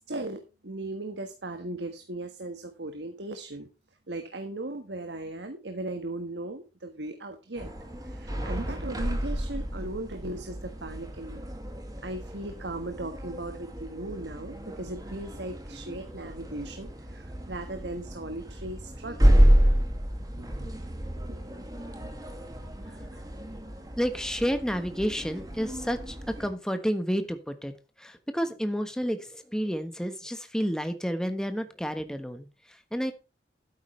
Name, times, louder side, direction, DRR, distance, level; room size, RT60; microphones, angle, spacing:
voice 1, 0.1-3.7 4.1-7.7 8.0-11.5 12.0-19.4 21.3-21.4, right 2 dB, 85° right, 7 dB, 1.5 m, -37 dB
sound 1, 7.6-26.5, equal, 20° right, 2.2 m, -29 dB
voice 2, 24.0-27.7 28.0-33.1, equal, 5° left, 8 dB, 1.2 m, -30 dB
12.0 x 9.6 x 3.3 m, 0.30 s
head